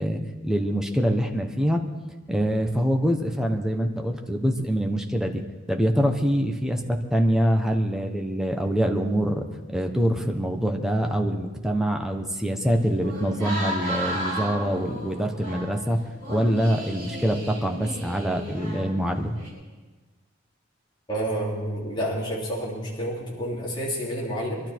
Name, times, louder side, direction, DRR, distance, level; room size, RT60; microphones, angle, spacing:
voice 1, 0.0-1.8 2.3-5.4 5.7-16.0 16.3-19.4, equal, 5° right, 3 dB, 1.1 m, -25 dB
sound 1, 12.6-19.5, right 1 dB, 50° right, 5.5 m, -34 dB
voice 2, 21.1-24.6, right 1 dB, 25° left, -6 dB, 3.4 m, -29 dB
23.0 x 12.5 x 4.6 m, 1.3 s
head